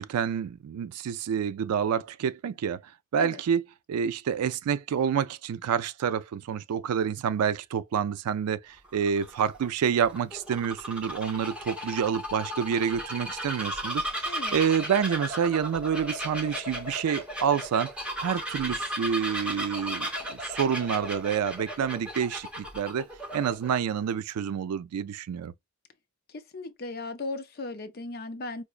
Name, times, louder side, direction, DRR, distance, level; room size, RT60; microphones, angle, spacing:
voice 1, 0.0-17.9 18.2-23.1 23.3-25.5, right 7 dB, 85° right, 0.3 m, -28 dB
Bird vocalization bird call bird song, 8.8-23.8, equal, 5° right, 0.7 m, -35 dB
voice 2, 14.3-14.6 26.3-28.6, left 2 dB, 45° left, 0.5 m, -37 dB
4.8 x 2.0 x 2.4 m
head